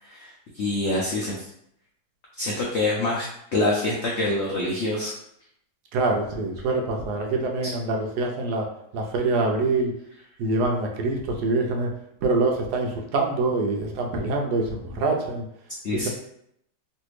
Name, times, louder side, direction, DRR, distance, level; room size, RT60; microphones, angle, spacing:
voice 1, 0.0-1.5 2.4-3.3 3.5-5.1 15.8-16.1, left 2 dB, 85° left, -3 dB, 0.5 m, -26 dB
voice 2, 5.9-8.7 8.9-9.9 10.4-11.9 12.2-15.4 15.9-16.1, right 3 dB, 75° right, 1 dB, 1.1 m, -25 dB
3.2 x 2.5 x 3.1 m, 0.73 s
omnidirectional pair, 1.8 m